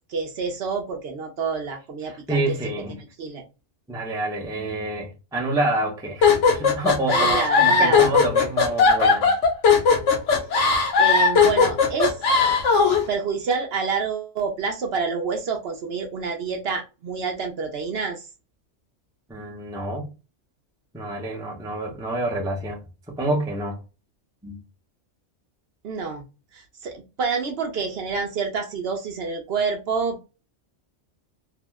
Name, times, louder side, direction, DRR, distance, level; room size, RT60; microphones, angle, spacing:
voice 1, 0.1-2.6 3.2-3.4 7.1-8.1 11.0-12.1 12.7-18.2 25.8-26.2 26.5-30.2, right 5 dB, 60° right, 0.8 m, -28 dB
voice 2, 2.3-3.0 3.9-9.3 19.3-20.1 20.9-22.8 23.1-23.8 24.4-24.6, right 2 dB, 5° right, 0.5 m, -27 dB
sound 1, 6.2-13.0, left 5 dB, 70° left, 1.1 m, -18 dB
2.7 x 2.0 x 3.3 m
omnidirectional pair, 1.3 m